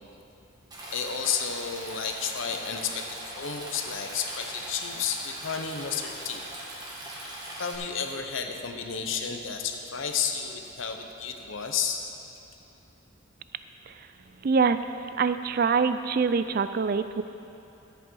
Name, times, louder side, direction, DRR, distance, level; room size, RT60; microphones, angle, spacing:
Stream, 0.7-7.8, right 1 dB, 20° right, 1.5 m, -41 dB
voice 1, 0.9-6.4 7.6-12.0, left 6 dB, 70° left, 4 dB, 0.9 m, -32 dB
voice 2, 14.4-14.8 15.2-17.2, right 5 dB, 45° right, 11 dB, 0.3 m, -24 dB
13.0 x 8.4 x 4.7 m, 3.0 s
head